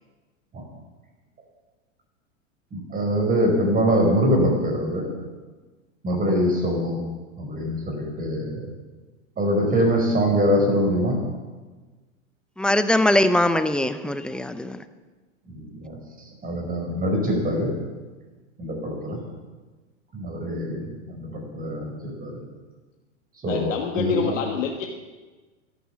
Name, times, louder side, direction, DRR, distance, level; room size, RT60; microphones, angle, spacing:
voice 1, 2.7-5.0 6.0-7.0 7.4-8.7 9.4-11.2 15.5-17.8 18.6-19.2 20.1-22.4 23.4-24.4, equal, 20° right, 2 dB, 5.0 m, -24 dB
voice 2, 12.6-14.8, left 1 dB, ahead, 11 dB, 0.6 m, -21 dB
voice 3, 23.5-24.9, left 6 dB, 75° left, 2 dB, 1.6 m, -26 dB
13.0 x 11.5 x 7.2 m, 1.3 s
hypercardioid pair, 115°, 39 cm